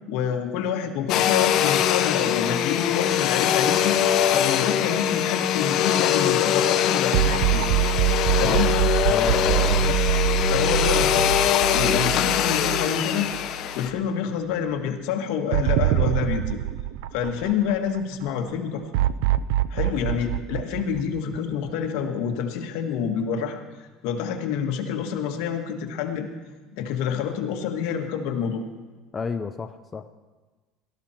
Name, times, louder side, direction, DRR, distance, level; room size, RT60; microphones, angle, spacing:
voice 1, 0.1-4.0 4.3-7.6 8.4-8.7 9.8-10.0 10.5-13.3 13.7-16.6 17.1-18.8 19.7-23.6 24.0-26.3 26.7-28.6, left 7 dB, 75° left, 4 dB, 1.7 m, -27 dB
Domestic sounds home sounds, 1.1-13.9, left 10 dB, 50° left, 0.8 m, -22 dB
sound 1, 7.1-13.5 13.8-13.9 15.5-18.0 18.9-21.7, right 12 dB, 85° right, 0.4 m, -24 dB
voice 2, 8.4-8.7 9.1-9.9 29.1-30.1, left 5 dB, 20° left, 7 dB, 0.5 m, -30 dB
17.5 x 13.0 x 4.4 m, 1.3 s
cardioid pair, 150°, 0 cm